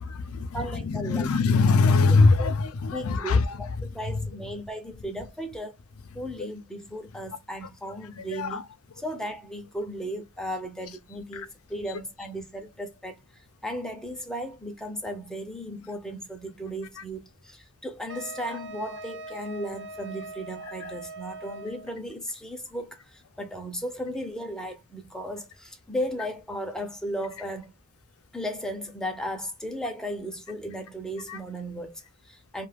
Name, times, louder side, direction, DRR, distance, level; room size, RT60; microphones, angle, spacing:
voice 1, 0.0-3.6 8.3-8.6 11.3-11.4 31.3-31.4, left 4 dB, 90° left, 0.5 m, -22 dB
voice 2, 0.5-1.3 2.4-2.5 2.9-5.8 6.1-8.6 9.0-13.2 13.6-27.7 28.3-32.7, equal, 5° left, 0.6 m, -35 dB
Wind instrument woodwind instrument, 18.1-21.9, right 2 dB, 60° right, 0.5 m, -41 dB
2.4 x 2.4 x 3.2 m
head